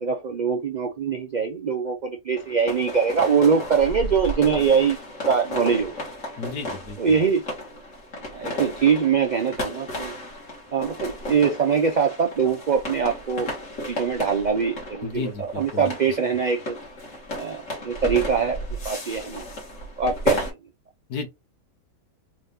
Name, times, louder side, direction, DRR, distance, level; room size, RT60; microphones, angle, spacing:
voice 1, 0.0-5.0 5.3-5.9 7.0-7.4 8.3-10.1 10.7-13.5 13.9-16.8 17.4-18.6 18.8-19.4 20.0-20.4, right 6 dB, 85° right, 0.4 m, -23 dB
sound 1, 2.3-20.5, equal, 55° left, 2.1 m, -33 dB
voice 2, 6.4-7.2 15.0-16.2 21.1-21.3, left 4 dB, 90° left, 1.8 m, -33 dB
4.0 x 2.7 x 3.4 m
omnidirectional pair, 1.6 m